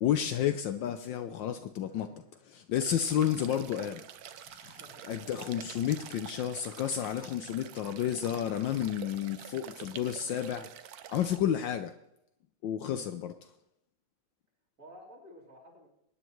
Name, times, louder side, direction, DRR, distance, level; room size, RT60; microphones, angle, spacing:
voice 1, 0.0-2.1 2.5-4.0 4.5-4.8 5.1-10.7 11.1-11.9 12.6-13.3, left 10 dB, 70° left, 8 dB, 1.2 m, -31 dB
voice 2, 1.8-2.3 4.6-5.3 12.8-13.1 14.8-15.9, equal, 40° right, -3 dB, 3.6 m, -54 dB
sound 1, 2.7-11.4, right 10 dB, 75° right, 0.8 m, -48 dB
23.0 x 10.0 x 3.1 m, 0.80 s
omnidirectional pair, 2.3 m